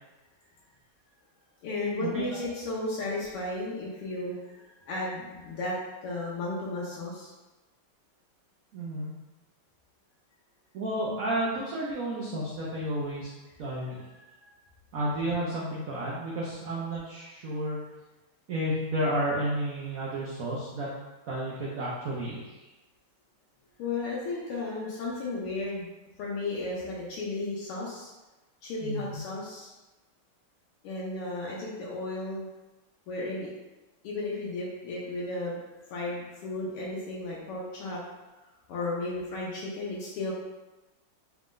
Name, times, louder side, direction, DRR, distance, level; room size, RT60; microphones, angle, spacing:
voice 1, 1.6-5.8 6.0-7.3 14.2-14.5 23.8-25.9 26.2-28.1 28.6-29.7 30.8-32.5 33.1-33.5 34.0-38.0 38.7-40.3, left 2 dB, 90° left, -5 dB, 1.7 m, -34 dB
voice 2, 8.7-9.1 10.7-13.3 13.6-14.0 14.9-17.8 18.5-20.9 21.3-22.5 28.8-29.2, right 1 dB, 80° right, -5 dB, 0.7 m, -31 dB
4.4 x 2.5 x 3.6 m, 1.1 s
omnidirectional pair, 2.4 m